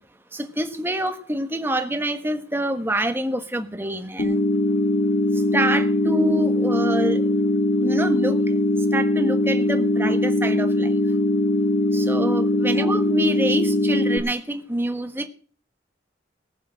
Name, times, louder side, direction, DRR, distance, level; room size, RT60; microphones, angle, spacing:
voice 1, 0.3-4.4 5.5-7.6 7.8-8.4 8.9-11.0 11.9-15.3, right 1 dB, 10° right, 7 dB, 1.3 m, -26 dB
sound 1, 4.2-14.2, left 1 dB, 60° left, 2.0 m, -21 dB
19.5 x 7.2 x 6.3 m, 0.42 s
head